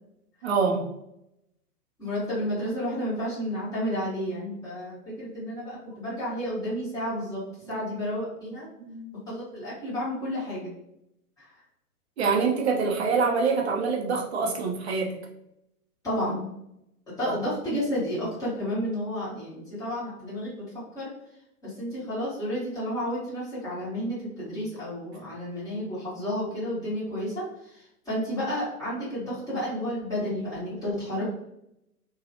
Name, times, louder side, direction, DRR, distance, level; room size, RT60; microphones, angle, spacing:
voice 1, 0.4-0.8 7.7-7.8 8.8-9.1 12.2-15.1 17.3-17.4 25.2-25.3, right 5 dB, 45° right, 1 dB, 0.6 m, -25 dB
voice 2, 2.0-7.4 7.7-8.7 9.3-10.7 11.4-11.5 16.0-16.5 17.2-20.6 20.9-21.1 21.6-31.2, equal, 5° left, -10 dB, 1.1 m, -31 dB
2.8 x 2.3 x 2.7 m, 0.81 s
figure-of-eight pair, 125°, 47 cm